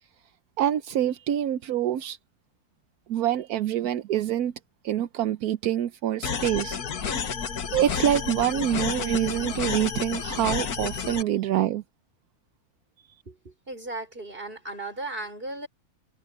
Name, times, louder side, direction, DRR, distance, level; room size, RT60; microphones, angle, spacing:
voice 1, 0.6-2.2 3.1-4.5 4.8-6.8 7.1-7.3 7.7-11.8, right 11 dB, 80° right, 1.2 m, -26 dB
sound 1, 6.2-11.2, left 6 dB, 85° left, 2.0 m, -30 dB
voice 2, 13.3-15.7, right 2 dB, 35° right, 5.8 m, -36 dB
omnidirectional pair, 1.6 m